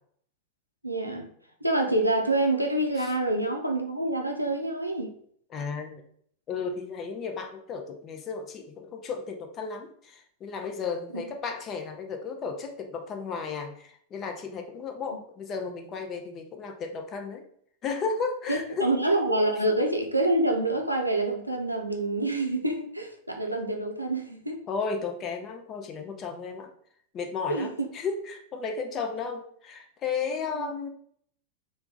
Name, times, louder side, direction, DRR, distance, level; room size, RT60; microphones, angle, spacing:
voice 1, 0.8-1.3 1.6-5.1 11.1-11.2 18.5-24.6 27.5-27.9 30.5-30.7, right 1 dB, 90° right, 2 dB, 0.5 m, -27 dB
voice 2, 5.5-6.0 6.5-17.4 17.8-18.9 24.7-26.7 27.1-30.9, left 5 dB, 30° left, 5 dB, 0.5 m, -34 dB
3.3 x 2.1 x 3.7 m, 0.63 s
figure-of-eight pair, 90°, 0 cm